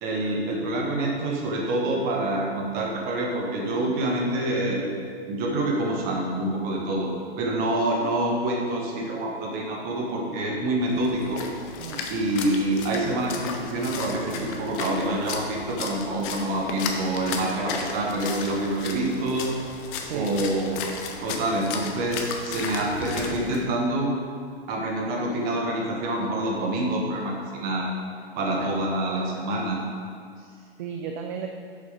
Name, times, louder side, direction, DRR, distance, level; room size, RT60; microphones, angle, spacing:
voice 1, 0.0-4.8 5.3-7.1 7.4-11.5 12.1-19.5 20.1-20.8 21.2-24.1 24.7-27.9 28.4-29.8, right 1 dB, 30° right, -1 dB, 1.4 m, -26 dB
Splash splatter, 10.9-23.6, left 5 dB, 15° left, 0.3 m, -35 dB
voice 2, 20.0-20.3 28.6-28.7 30.4-31.5, right 7 dB, 50° right, 3 dB, 0.6 m, -35 dB
7.0 x 5.4 x 5.1 m, 2.2 s
hypercardioid pair, 140°, 32 cm